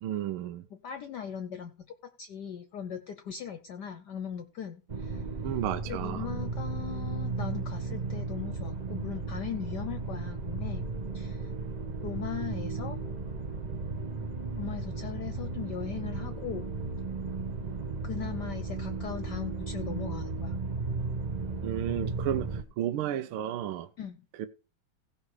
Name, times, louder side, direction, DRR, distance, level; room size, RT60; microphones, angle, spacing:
voice 1, 0.0-0.7 5.4-6.3 21.6-23.9 24.4-24.5, right 11 dB, 80° right, 1.6 m, -32 dB
voice 2, 0.7-1.7 2.2-5.2 5.9-10.9 11.1-11.5 12.0-13.0 14.6-16.7 18.0-20.5 24.0-24.2, left 8 dB, 60° left, 1.3 m, -39 dB
sound 1, 4.9-22.6, right 3 dB, 45° right, 0.5 m, -35 dB
16.5 x 5.6 x 4.8 m
omnidirectional pair, 2.4 m